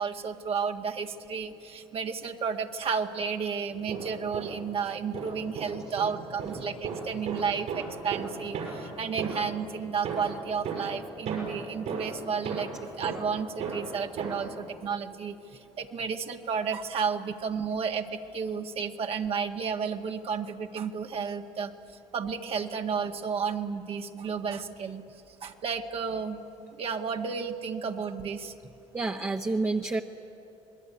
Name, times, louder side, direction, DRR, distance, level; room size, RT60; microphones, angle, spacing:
voice 1, 0.0-12.7 13.0-21.7 22.1-25.0 25.4-26.4 26.8-28.5, right 6 dB, 55° right, 4 dB, 1.8 m, -32 dB
sound 1, 3.7-4.8 5.1-9.6 10.0-14.6, right 5 dB, 80° right, 6.2 m, -36 dB
voice 2, 28.9-30.0, right 3 dB, 25° right, 2 dB, 1.2 m, -28 dB
27.0 x 20.5 x 9.7 m, 2.9 s
cardioid pair, 85°, 12 cm